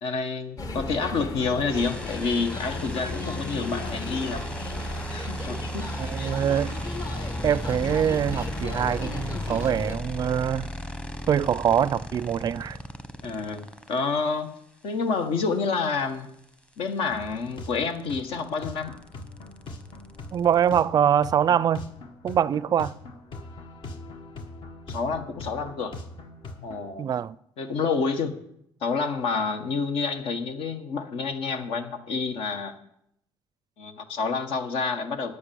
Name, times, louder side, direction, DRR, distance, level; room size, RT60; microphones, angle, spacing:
voice 1, 0.0-4.4 5.1-6.3 13.2-14.5 14.8-16.3 16.8-18.9 24.9-25.9 26.6-27.1 27.6-28.3 28.8-32.7 33.8-35.3, left 4 dB, 70° left, 1.4 m, -28 dB
sound 1, 0.6-10.0, left 2 dB, 40° left, 1.4 m, -34 dB
sound 2, 1.7-14.0 16.1-16.2 16.4-20.8, equal, 10° left, 1.1 m, -37 dB
voice 2, 6.0-6.7 7.4-10.7 11.3-12.8 20.3-21.9 22.2-22.9 27.0-27.4, right 9 dB, 45° right, 0.4 m, -24 dB
sound 3, 17.1-26.9, left 2 dB, 55° left, 1.5 m, -42 dB
9.7 x 8.7 x 7.0 m
cardioid pair, 100°, 10 cm